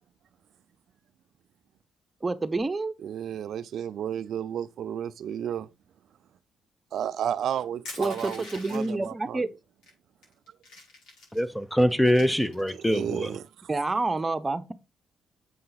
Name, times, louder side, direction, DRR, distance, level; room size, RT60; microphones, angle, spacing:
voice 1, 2.2-2.9 8.0-9.5 13.7-14.7, right 3 dB, 20° right, 0.9 m, -28 dB
voice 2, 3.0-5.7 6.9-9.4 12.8-13.4, right 9 dB, 70° right, 0.4 m, -32 dB
Crushing, 7.8-9.0 9.8-9.9 10.2-11.4 11.9-13.0, left 2 dB, 80° left, 5.7 m, -44 dB
voice 3, 11.3-13.3, equal, 5° left, 0.7 m, -24 dB
7.6 x 5.6 x 4.0 m
cardioid pair, 90°, 0 cm